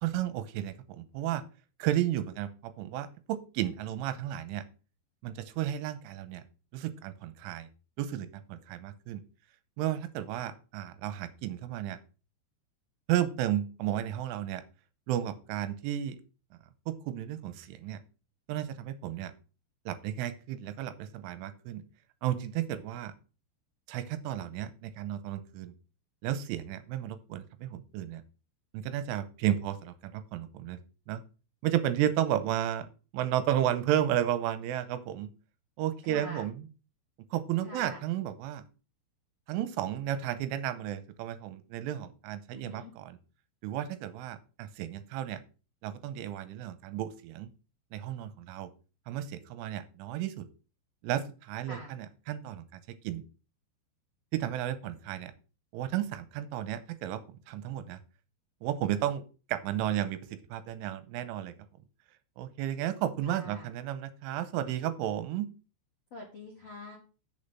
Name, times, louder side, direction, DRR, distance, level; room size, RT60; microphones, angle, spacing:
voice 1, 0.0-1.4 1.8-4.6 5.2-6.4 6.7-7.7 8.0-9.2 9.8-12.0 13.1-14.6 15.1-16.2 16.9-18.0 18.5-19.3 19.9-21.8 22.2-23.1 23.9-25.7 26.2-28.2 28.7-30.8 31.1-31.2 31.6-35.3 35.8-36.7 37.3-38.6 39.5-43.2 43.6-45.4 45.8-47.5 47.9-48.7 49.1-50.5 51.0-52.6 53.0-53.2 54.3-55.3 55.7-57.2 57.5-58.0 58.6-59.2 59.5-61.5 62.4-65.5, right 12 dB, 80° right, 12 dB, 3.2 m, -33 dB
voice 2, 36.1-36.4 37.6-38.0 42.5-42.9 51.7-51.9 63.2-63.7 66.1-67.0, left 2 dB, 60° left, -2 dB, 1.7 m, -45 dB
8.6 x 6.8 x 5.5 m, 0.34 s
omnidirectional pair, 5.7 m